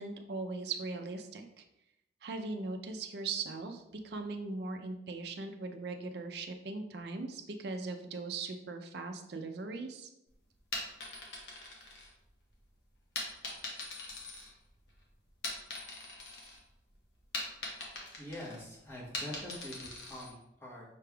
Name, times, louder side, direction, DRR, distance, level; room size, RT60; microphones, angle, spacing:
voice 1, 0.0-1.6 2.2-10.1, right 3 dB, 60° right, 5 dB, 0.4 m, -39 dB
sound 1, 10.6-12.5 13.2-14.9 15.3-16.6 16.9-20.3, left 2 dB, 60° left, 0.9 m, -42 dB
voice 2, 18.2-20.8, left 1 dB, 15° left, -6 dB, 1.1 m, -45 dB
5.8 x 3.3 x 2.3 m, 0.87 s
head